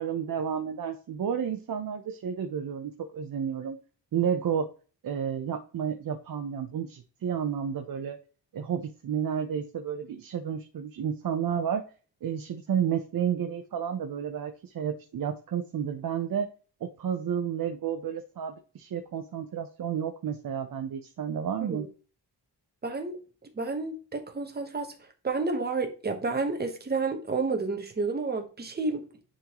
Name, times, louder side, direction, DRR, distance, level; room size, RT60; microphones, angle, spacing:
voice 1, 0.0-3.8 4.1-4.7 5.0-8.2 8.5-11.8 12.2-16.5 16.8-21.9, right 8 dB, 55° right, 0.7 m, -31 dB
voice 2, 22.8-23.2 23.5-24.9 25.2-29.0, right 3 dB, 25° right, 1.1 m, -30 dB
10.0 x 3.8 x 3.0 m
wide cardioid pair, 165°, 42 cm